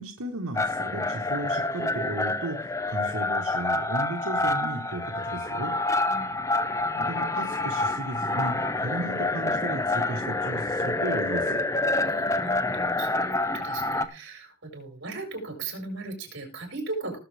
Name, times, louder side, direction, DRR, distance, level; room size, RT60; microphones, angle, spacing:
voice 1, 0.0-5.7 6.9-11.6, right 1 dB, 80° right, 2 dB, 1.5 m, -35 dB
sound 1, 0.5-14.0, left 2 dB, 15° left, 0.6 m, -27 dB
voice 2, 6.0-6.5 12.0-17.2, right 3 dB, 55° right, 3 dB, 5.4 m, -37 dB
19.5 x 7.3 x 3.5 m, 0.33 s
head